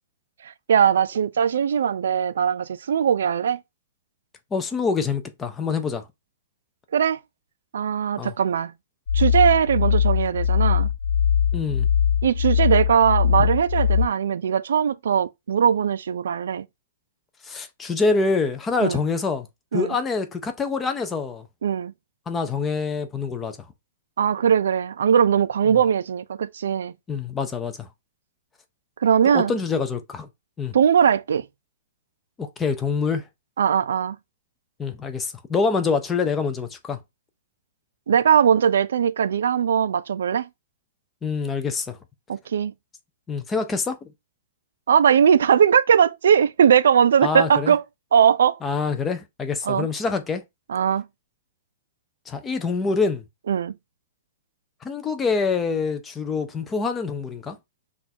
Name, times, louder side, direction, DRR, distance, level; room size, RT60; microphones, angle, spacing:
voice 1, 0.7-3.6 6.9-7.2 7.7-8.7 9.1-10.9 12.2-16.6 18.8-19.0 19.7-19.9 21.6-21.9 24.2-26.9 29.0-29.5 30.7-31.4 33.6-34.2 38.1-40.5 42.3-42.7 44.9-47.8 48.1-48.6 49.6-49.9 50.7-51.1 53.5-53.7, right 8 dB, 85° right, 0.3 m, -20 dB
voice 2, 4.5-6.0 8.2-8.3 11.5-11.9 17.4-19.5 19.7-21.5 22.3-23.6 27.1-27.9 29.3-30.3 30.6-30.7 32.4-33.2 34.8-37.0 41.2-42.0 43.3-44.0 47.2-47.7 48.6-50.4 52.3-53.2 54.8-57.6, left 4 dB, 10° left, 0.4 m, -25 dB
sound 1, 9.1-14.1, left 8 dB, 65° left, 1.3 m, -21 dB
6.0 x 2.3 x 2.7 m
hypercardioid pair, 180°, 0 cm